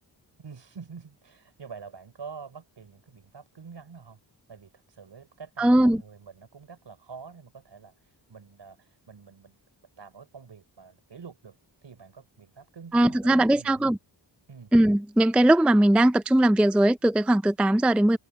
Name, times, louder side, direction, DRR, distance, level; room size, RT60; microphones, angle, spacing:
voice 1, 0.4-4.2 4.5-7.9 8.3-9.6 10.0-11.6 11.8-13.9 14.5-14.7, right 5 dB, 65° right, 5.0 m, -46 dB
voice 2, 5.6-6.0 12.9-14.0 14.7-18.2, right 1 dB, 5° right, 0.4 m, -20 dB
wide cardioid pair, 125°, 45 cm